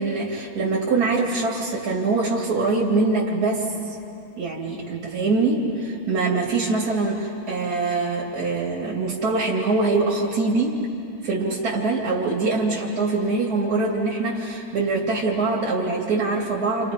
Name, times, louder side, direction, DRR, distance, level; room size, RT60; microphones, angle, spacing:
voice 1, 0.0-4.0 4.4-10.8 11.2-16.9, right 3 dB, 90° right, -3 dB, 2.9 m, -23 dB
30.0 x 28.0 x 5.2 m, 2.7 s
omnidirectional pair, 1.6 m